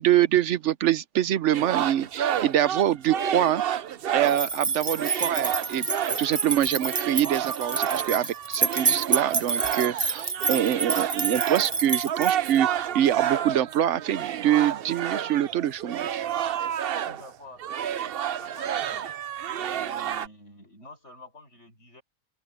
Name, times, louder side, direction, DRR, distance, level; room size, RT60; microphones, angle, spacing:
voice 1, 0.0-3.6 4.1-5.9 6.2-12.7 12.9-16.2, right 11 dB, 85° right, 1.0 m, -25 dB
sound 1, 1.5-4.5 4.9-17.3 17.6-20.3, right 10 dB, 60° right, 0.8 m, -30 dB
sound 2, 4.3-12.6, right 4 dB, 20° right, 1.1 m, -28 dB
voice 2, 17.1-18.0 18.3-19.1 19.7-22.0, left 1 dB, 80° left, 7.7 m, -49 dB
open air
omnidirectional pair, 1.2 m